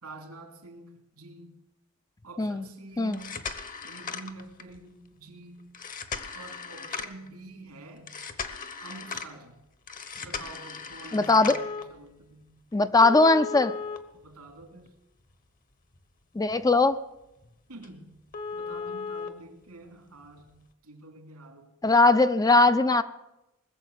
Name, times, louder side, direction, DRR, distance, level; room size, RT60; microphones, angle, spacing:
voice 1, 0.0-1.5 2.2-3.5 3.8-5.6 6.3-8.1 8.8-9.6 10.2-12.5 14.1-14.9 17.7-18.1 18.5-21.8, right 2 dB, 85° right, 4 dB, 3.0 m, -47 dB
sound 1, 3.0-4.8 5.7-7.3 8.1-9.3 9.9-11.8 13.0-14.9 15.3-15.4 16.0-16.1 16.5-16.7 16.9-17.0 17.4-17.5 17.8-17.9 18.3-19.3 20.4-20.5, left 5 dB, 40° left, 1.0 m, -37 dB
voice 2, 11.1-11.6 12.7-13.8 16.4-17.0 21.8-23.0, left 3 dB, 15° left, 11 dB, 0.4 m, -20 dB
20.0 x 7.1 x 8.2 m, 0.91 s
head